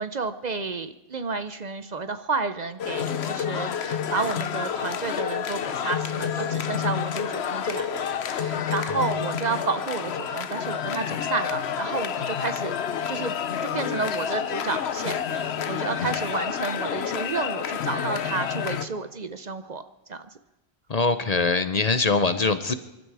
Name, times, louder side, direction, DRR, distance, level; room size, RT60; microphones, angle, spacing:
voice 1, 0.0-12.7 13.1-13.4 13.6-19.8 20.1-20.2, right 4 dB, 45° right, 11 dB, 0.8 m, -31 dB
sound 1, 2.8-18.9, left 8 dB, 90° left, 1.1 m, -29 dB
voice 2, 20.9-22.7, left 3 dB, 40° left, 11 dB, 0.8 m, -22 dB
24.5 x 12.5 x 4.8 m, 1.0 s
omnidirectional pair, 1.1 m